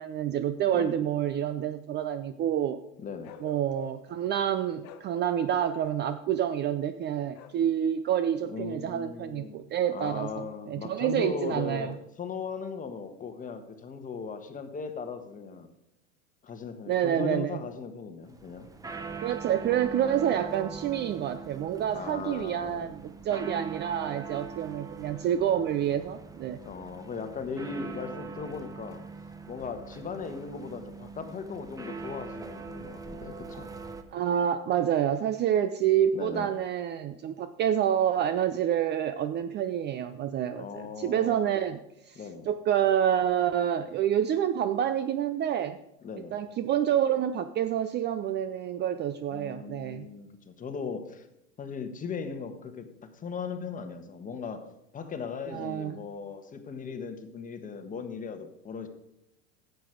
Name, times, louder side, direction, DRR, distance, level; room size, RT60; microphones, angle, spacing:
voice 1, 0.0-2.8 3.4-11.9 16.9-17.6 19.2-26.6 34.1-41.8 42.1-42.2 42.5-45.8 46.3-50.1 55.5-55.9, right 10 dB, 30° right, 12 dB, 0.5 m, -28 dB
voice 2, 0.7-1.0 3.0-3.3 8.5-9.6 9.9-15.7 16.4-18.7 21.9-22.9 26.6-29.0 29.5-33.7 36.1-36.5 40.6-41.5 42.1-42.5 46.0-46.4 49.3-51.3 51.6-58.9, left 5 dB, 20° left, 7 dB, 1.3 m, -38 dB
Bark, 3.2-4.1 4.8-5.1 5.6-6.3 7.3-7.6, left 11 dB, 55° left, 1.1 m, -48 dB
sound 1, 18.2-34.0, right 4 dB, 10° right, 0.8 m, -42 dB
10.5 x 8.0 x 5.0 m, 0.86 s
supercardioid pair, 115°, 36 cm